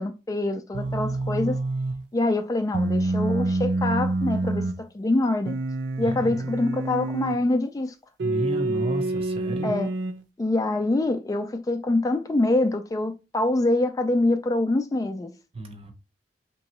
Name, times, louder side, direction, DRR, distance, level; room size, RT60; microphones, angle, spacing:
voice 1, 0.0-1.6 2.1-5.5 6.0-7.9 9.6-9.9 10.4-15.3, left 2 dB, 20° left, 0.3 m, -25 dB
sound 1, 0.7-2.0 2.7-4.8 5.4-7.4 8.2-10.2, right 2 dB, 75° right, 0.4 m, -27 dB
voice 2, 6.0-6.4 8.2-9.7 15.5-15.9, right 1 dB, 35° right, 0.8 m, -32 dB
3.5 x 3.0 x 2.9 m
head